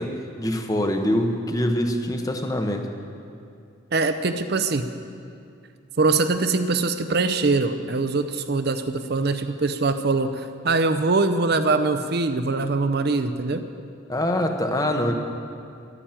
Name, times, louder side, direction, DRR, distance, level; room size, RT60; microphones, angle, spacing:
voice 1, 0.0-2.9 14.1-15.1, left 1 dB, 15° left, 5 dB, 0.9 m, -24 dB
voice 2, 3.9-4.9 6.0-13.6, right 3 dB, 50° right, 9 dB, 0.6 m, -23 dB
12.0 x 9.9 x 8.9 m, 2.5 s
head